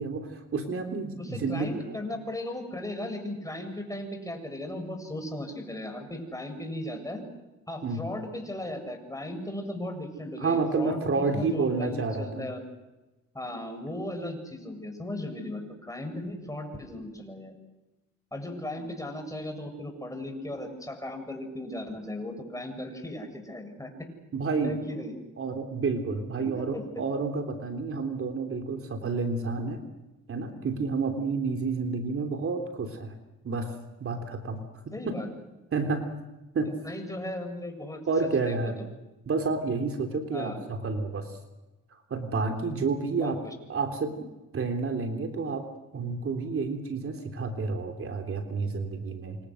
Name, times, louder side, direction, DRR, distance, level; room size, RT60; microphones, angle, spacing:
voice 1, 0.0-2.0 7.8-8.0 10.4-12.5 18.8-18.9 24.3-24.8 25.4-29.8 30.3-33.1 33.4-33.7 34.0-35.2 35.7-36.1 36.5-36.7 38.1-38.8 39.2-41.4 42.1-43.4 43.7-44.1 44.5-45.7 45.9-49.4, right 4 dB, 45° right, 5 dB, 3.4 m, -30 dB
voice 2, 1.2-7.2 7.7-12.6 13.3-17.6 18.3-24.1 24.6-25.1 26.4-26.8 34.9-35.3 36.8-38.0 38.5-38.7 40.3-40.6 43.2-43.5, left 1 dB, 10° left, 5 dB, 7.5 m, -37 dB
28.0 x 27.5 x 6.5 m, 1.0 s
cardioid pair, 90°, 30 cm